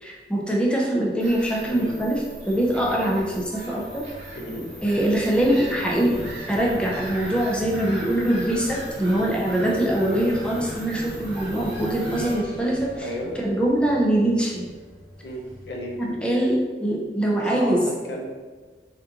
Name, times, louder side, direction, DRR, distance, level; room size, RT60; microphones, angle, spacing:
voice 1, 0.0-4.1 4.8-13.1 13.4-14.6 16.0-17.9, right 1 dB, 5° left, -3 dB, 0.4 m, -23 dB
Bird vocalization bird call bird song / Gull seagull, 1.2-12.3, equal, 85° right, 0.9 m, -41 dB
sound 1, 1.3-7.2 7.5-15.3, right 1 dB, 55° left, 1.0 m, -45 dB
voice 2, 1.7-2.0 4.3-4.7 13.0-13.3 15.2-15.9 17.4-18.3, equal, 80° left, -1 dB, 0.6 m, -33 dB
sound 2, 2.2-16.5, equal, 35° right, 1.1 m, -41 dB
3.5 x 2.4 x 2.8 m, 1.4 s
head